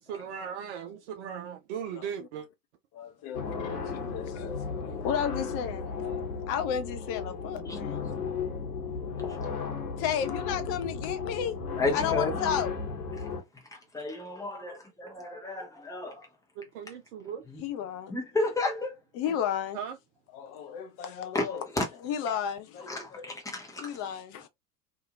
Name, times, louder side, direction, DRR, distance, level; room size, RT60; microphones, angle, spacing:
voice 1, 0.0-2.5 16.6-17.4 19.7-20.0, right 8 dB, 45° right, 0.5 m, -38 dB
voice 2, 2.9-4.6 5.0-8.1 10.0-11.6 11.9-12.7 17.6-18.1 19.2-19.8 20.3-21.7 22.0-23.2 23.8-24.5, left 8 dB, 30° left, 0.4 m, -33 dB
sound 1, 3.3-13.4, left 5 dB, 65° left, 1.2 m, -34 dB
voice 3, 11.8-12.4 13.2-13.3 13.7-16.3 17.5-17.6 18.1-18.9 20.4-20.7 21.3-21.9 22.9-24.0, left 2 dB, 5° left, 0.9 m, -33 dB
2.7 x 2.5 x 2.4 m
figure-of-eight pair, 80°, 48 cm